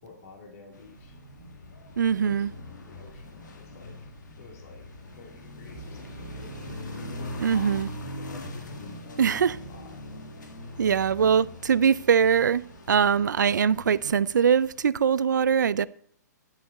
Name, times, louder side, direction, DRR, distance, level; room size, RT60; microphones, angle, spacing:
voice 1, 0.0-1.2 2.1-4.9 5.2-6.7 7.1-10.0 11.4-11.5, left 4 dB, 55° left, 3.0 m, -50 dB
sound 1, 0.7-14.8, left 1 dB, 85° left, 1.6 m, -42 dB
voice 2, 2.0-2.5 7.4-7.9 9.2-9.5 10.8-15.9, right 7 dB, 85° right, 0.4 m, -22 dB
sound 2, 5.7-8.7, right 6 dB, 40° right, 0.6 m, -47 dB
11.0 x 7.2 x 4.2 m
hypercardioid pair, 135°, 10 cm